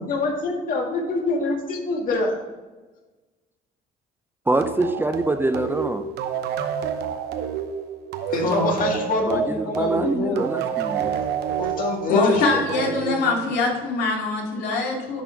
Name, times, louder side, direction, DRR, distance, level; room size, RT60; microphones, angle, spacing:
voice 1, 0.0-2.3 8.3-10.5 11.6-13.2, left 2 dB, 55° left, 0 dB, 2.0 m, -25 dB
voice 2, 4.5-6.1 9.2-11.2, right 2 dB, 10° right, 8 dB, 0.4 m, -24 dB
sound 1, 4.6-13.8, right 8 dB, 75° right, 0.8 m, -29 dB
voice 3, 8.4-8.9 12.1-15.2, left 3 dB, 75° left, -2 dB, 2.5 m, -23 dB
10.5 x 4.0 x 4.5 m, 1.2 s
cardioid pair, 110°, 17 cm